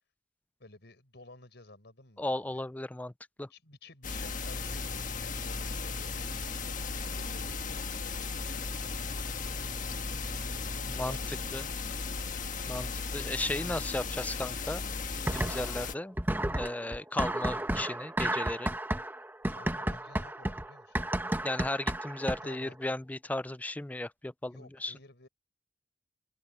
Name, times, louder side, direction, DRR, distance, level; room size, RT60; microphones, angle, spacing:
voice 1, 0.6-2.6 3.5-6.1 6.6-9.5 10.5-12.5 19.5-21.4 22.4-22.8 24.5-25.3, left 2 dB, 70° left, 6.2 m, -54 dB
voice 2, 2.2-3.1 3.4-3.5 10.9-11.2 11.5-11.7 12.7-14.8 15.3-16.2 16.5-18.7 21.4-24.9, left 1 dB, 10° left, 0.4 m, -35 dB
sound 1, 4.0-15.9, left 4 dB, 50° left, 1.4 m, -36 dB
sound 2, 4.4-13.9, right 1 dB, 70° right, 4.1 m, -51 dB
Laser Pistol Shooting, 15.3-15.9 16.2-22.6, right 1 dB, 10° right, 1.2 m, -32 dB
head